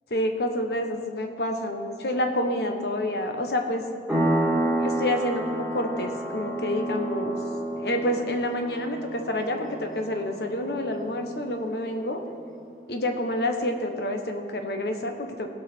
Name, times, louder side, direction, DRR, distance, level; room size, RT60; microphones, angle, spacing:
voice 1, 0.1-3.8 4.8-7.4 7.8-12.2 12.9-15.5, left 1 dB, 70° left, 4 dB, 1.0 m, -28 dB
sound 1, 4.1-12.4, right 1 dB, 5° right, 2.0 m, -30 dB
16.5 x 6.4 x 4.4 m, 2.3 s
head